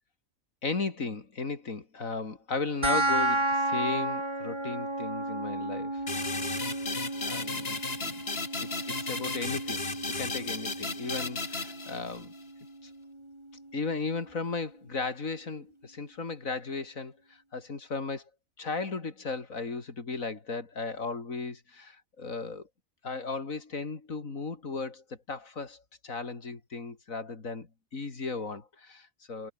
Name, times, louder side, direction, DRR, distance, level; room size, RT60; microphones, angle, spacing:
voice 1, 0.6-6.0 6.4-6.5 7.2-8.2 8.6-12.3 12.8-12.9 13.7-18.3 18.6-22.7 23.0-29.5, left 4 dB, 70° left, 3.2 m, -36 dB
sound 1, 2.8-13.8, right 1 dB, 20° right, 3.1 m, -33 dB
sound 2, 6.1-12.4, left 3 dB, 45° left, 2.8 m, -35 dB
omnidirectional pair, 1.5 m